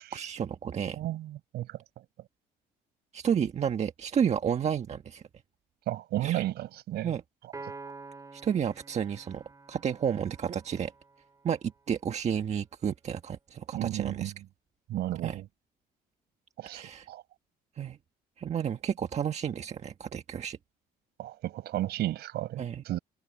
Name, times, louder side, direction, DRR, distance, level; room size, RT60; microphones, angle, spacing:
voice 1, 0.1-1.0 3.1-5.2 6.2-6.5 7.0-7.2 8.3-9.4 9.7-10.9 11.4-11.6 11.9-14.3 15.2-15.4 16.7-17.1 17.8-18.0 18.4-20.6 22.6-22.8, right 8 dB, 40° right, 1.4 m, -31 dB
voice 2, 1.0-1.8 5.9-7.1 13.7-14.3 14.9-15.5 16.6-17.2 21.2-23.0, right 14 dB, 75° right, 6.1 m, -33 dB
Piano, 7.5-11.1, right 3 dB, 20° right, 4.9 m, -47 dB
cardioid pair, 110°, 17 cm